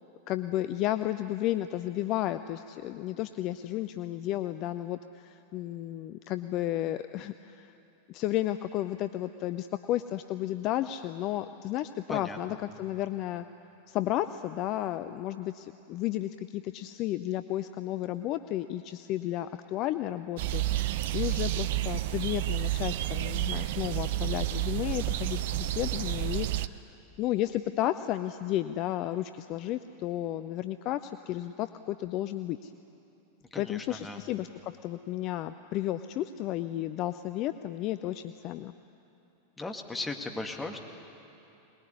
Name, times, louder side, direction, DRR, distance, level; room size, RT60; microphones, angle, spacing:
voice 1, 0.3-7.7 8.1-13.5 13.9-26.8 27.2-32.7 33.6-38.7, left 13 dB, 40° left, 11 dB, 0.6 m, -33 dB
voice 2, 12.1-12.8 33.5-34.2 39.6-40.8, left 2 dB, 10° left, 2 dB, 2.3 m, -37 dB
sound 1, 20.4-26.7, right 14 dB, 50° right, 0.7 m, -30 dB
23.0 x 20.5 x 9.8 m, 2.8 s
figure-of-eight pair, 90°, 0 cm